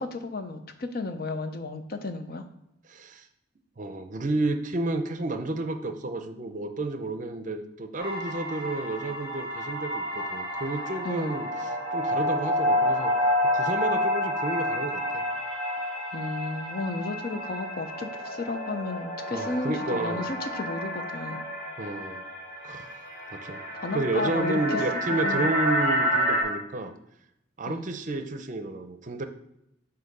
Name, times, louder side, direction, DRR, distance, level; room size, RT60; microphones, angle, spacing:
voice 1, 0.0-2.5 11.0-11.4 16.1-21.4 23.8-24.8 25.1-25.5 27.7-27.9, left 3 dB, 50° left, 7 dB, 0.6 m, -33 dB
voice 2, 2.9-3.3 3.8-13.1 13.5-15.2 19.3-20.3 21.8-22.2 22.6-23.0 23.3-23.6 23.9-26.9 27.6-29.3, right 2 dB, 40° right, 8 dB, 0.6 m, -31 dB
sound 1, 8.0-26.4, equal, 30° left, 2.4 m, -29 dB
7.9 x 2.7 x 5.3 m, 0.84 s
head